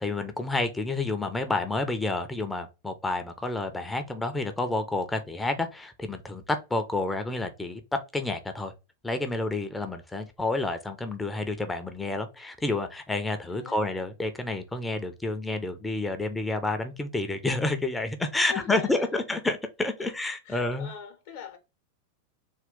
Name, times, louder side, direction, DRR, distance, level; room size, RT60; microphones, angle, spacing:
voice 1, 0.0-7.8 8.1-8.7 9.0-20.9, left 2 dB, 10° left, 0.5 m, -29 dB
voice 2, 13.5-13.9 18.4-19.2 20.0-20.2 20.4-21.6, left 8 dB, 50° left, 0.8 m, -42 dB
3.5 x 2.3 x 3.6 m
figure-of-eight pair, 90°, 0 cm